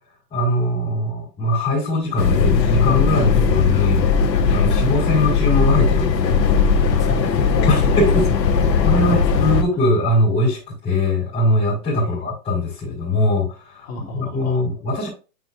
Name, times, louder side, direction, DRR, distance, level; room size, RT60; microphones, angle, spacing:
voice 1, 0.3-4.1 4.5-6.4 7.7-8.2 8.8-13.9 14.1-15.1, left 1 dB, 10° left, -9 dB, 4.9 m, -21 dB
sound 1, 2.2-9.6, left 5 dB, 85° left, 1.6 m, -18 dB
voice 2, 6.9-8.1 8.4-9.5 12.0-12.2 13.9-14.6, left 1 dB, 40° left, 0 dB, 3.0 m, -32 dB
10.5 x 5.9 x 2.6 m, 0.32 s
hypercardioid pair, 170°, 49 cm